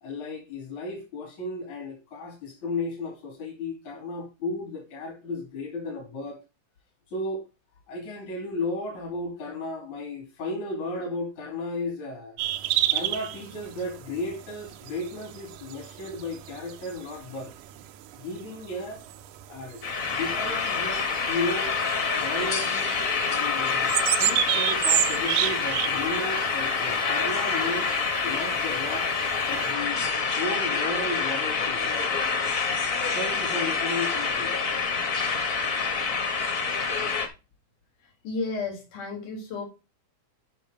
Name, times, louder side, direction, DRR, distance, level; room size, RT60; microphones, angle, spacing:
voice 1, 0.0-6.4 7.1-7.4 7.9-12.4 12.9-17.5 18.2-19.0 19.5-19.8 20.2-21.7 22.2-23.0 23.3-27.9 28.2-29.1 29.5-30.0 30.3-32.0 33.1-34.5, left 2 dB, 70° left, 3.9 m, -34 dB
sound 1, 12.4-29.7, right 13 dB, 85° right, 2.2 m, -32 dB
sound 2, 19.8-37.3, left 5 dB, 40° left, 1.2 m, -27 dB
voice 2, 38.0-39.6, left 3 dB, 90° left, 4.8 m, -33 dB
9.0 x 5.6 x 5.0 m
omnidirectional pair, 3.5 m